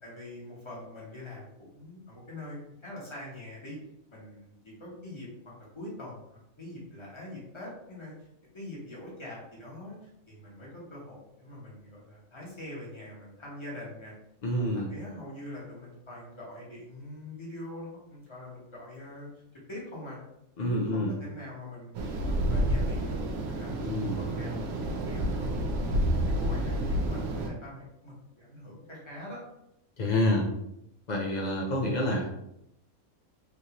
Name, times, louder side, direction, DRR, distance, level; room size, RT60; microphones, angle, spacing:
voice 1, 0.0-3.8 4.1-8.1 8.5-10.0 10.3-14.1 14.6-19.3 19.7-20.2 20.6-23.2 23.5-23.7 24.2-24.6 24.9-29.4, left 1 dB, 25° left, -5 dB, 0.9 m, -43 dB
voice 2, 14.4-14.9 20.6-21.1 23.8-24.2 30.0-30.5 31.1-32.3, left 1 dB, 80° left, -1 dB, 0.4 m, -27 dB
sound 1, 21.9-27.5, right 1 dB, 90° right, 1.1 m, -29 dB
3.5 x 2.6 x 2.8 m, 0.81 s
omnidirectional pair, 1.5 m